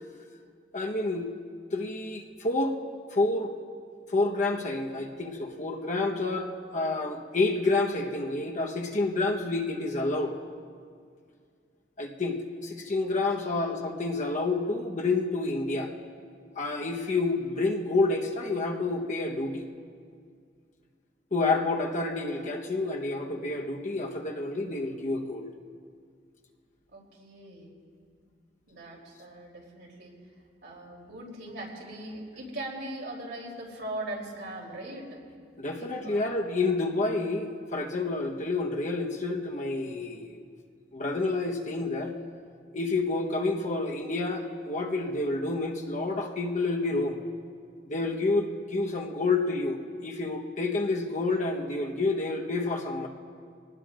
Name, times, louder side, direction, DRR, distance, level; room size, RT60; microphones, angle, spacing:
voice 1, 0.7-1.3 1.7-2.8 3.1-3.5 4.1-10.4 12.0-12.4 12.6-15.9 16.6-19.7 21.3-25.5 35.6-40.4 40.9-42.1 42.7-47.2 47.9-53.1, left 3 dB, 45° left, 1 dB, 1.1 m, -29 dB
voice 2, 13.0-13.8 26.9-27.7 28.7-30.2 30.6-35.2 35.8-36.4, right 1 dB, 70° right, -2 dB, 3.4 m, -40 dB
23.5 x 18.5 x 2.5 m, 2.1 s
head